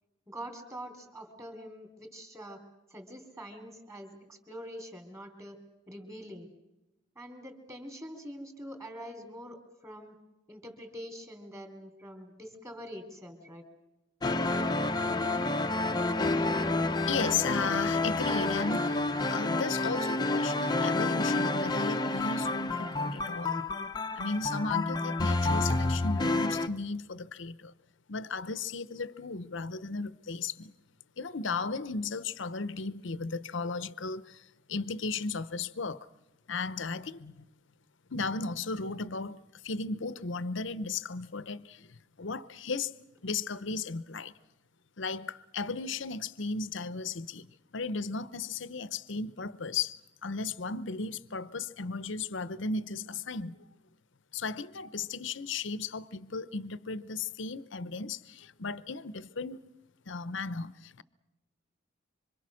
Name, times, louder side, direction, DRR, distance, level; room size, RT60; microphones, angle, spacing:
voice 1, 0.3-2.6 2.9-5.6 5.9-6.5 7.2-10.2 10.5-13.7, equal, 15° right, 3.5 m, -45 dB
sound 1, 14.2-26.7, left 2 dB, 20° left, 0.7 m, -29 dB
voice 2, 17.1-23.6 24.1-27.7 28.1-30.7 31.2-36.1 36.5-37.4 38.1-42.9 43.2-44.3 45.0-53.6 54.3-59.6 60.1-61.0, left 4 dB, 60° left, 0.8 m, -35 dB
26.5 x 25.5 x 6.3 m
head